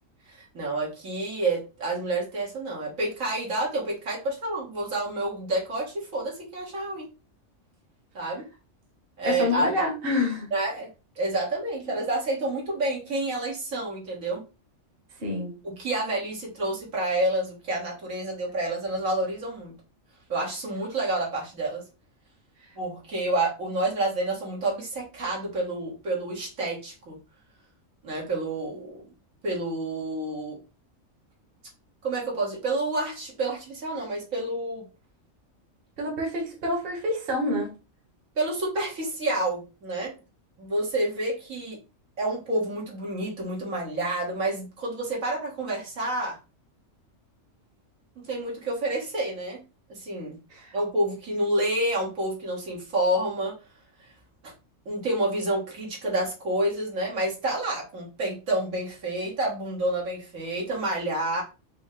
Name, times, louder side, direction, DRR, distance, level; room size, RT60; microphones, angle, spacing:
voice 1, 0.3-7.1 8.1-8.5 9.2-9.7 10.5-10.9 11.2-14.4 15.6-19.7 20.3-21.8 22.8-27.2 28.0-29.0 29.4-30.6 32.0-34.9 38.4-40.1 40.6-41.8 42.2-46.4 48.2-49.6 49.9-50.4 50.7-53.6 54.4-54.5 54.9-61.4, right 2 dB, 80° right, -4 dB, 1.9 m, -29 dB
voice 2, 9.3-10.5 15.2-15.6 36.0-37.7 50.5-50.8, left 2 dB, 45° right, 0 dB, 1.3 m, -27 dB
5.2 x 2.1 x 3.7 m, 0.31 s
omnidirectional pair, 1.4 m